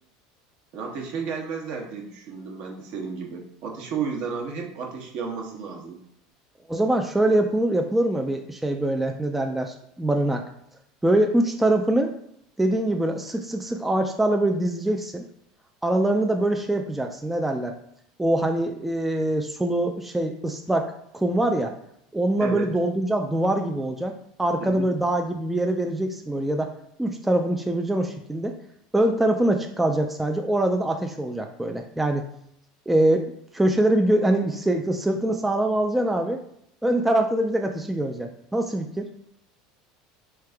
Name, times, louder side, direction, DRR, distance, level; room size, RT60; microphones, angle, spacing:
voice 1, 0.7-6.0 22.4-22.7 24.6-24.9, right 5 dB, 55° right, 1 dB, 1.0 m, -32 dB
voice 2, 6.7-10.4 11.0-12.1 12.6-15.2 15.8-17.7 18.2-21.7 22.1-24.1 24.4-26.7 27.0-28.6 28.9-32.3 32.9-33.2 33.5-36.4 36.8-39.1, right 1 dB, 5° right, 3 dB, 0.3 m, -23 dB
3.6 x 3.3 x 3.3 m, 0.71 s
supercardioid pair, 125°, 3 cm